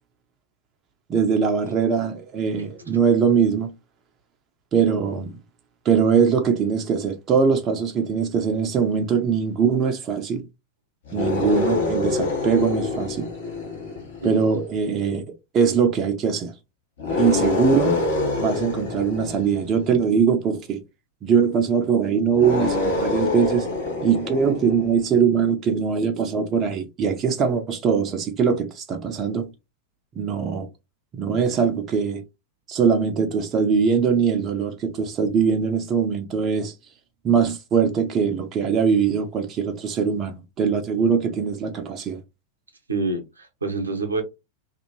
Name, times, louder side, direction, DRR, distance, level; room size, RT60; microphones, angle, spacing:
voice 1, 1.1-3.7 4.7-5.4 5.8-10.4 11.1-13.3 14.2-16.5 17.2-18.0 18.4-20.8 21.2-23.7 24.0-29.5 30.2-30.7 31.1-32.2 32.7-36.7 37.2-42.2, right 6 dB, 30° right, 0.5 m, -22 dB
sound 1, 11.1-14.6 17.0-20.1 22.3-25.1, left 3 dB, 65° left, 1.2 m, -26 dB
voice 2, 14.2-14.5 42.9-44.2, right 3 dB, 75° right, 0.7 m, -27 dB
2.6 x 2.5 x 2.9 m
figure-of-eight pair, 90°, 0 cm